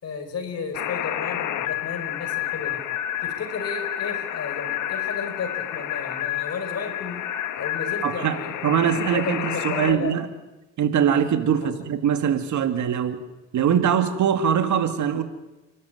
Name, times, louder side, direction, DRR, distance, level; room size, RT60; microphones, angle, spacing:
voice 1, 0.0-2.8 3.2-7.2 7.6-10.1 11.6-11.8, left 5 dB, 55° left, 7 dB, 5.0 m, -33 dB
sound 1, 0.7-9.9, left 12 dB, 80° left, 1.4 m, -30 dB
voice 2, 8.0-8.4 8.6-10.3 10.8-13.3 13.5-15.2, right 8 dB, 70° right, 8 dB, 2.3 m, -22 dB
30.0 x 13.0 x 9.5 m, 1.1 s
cardioid pair, 90°, 30 cm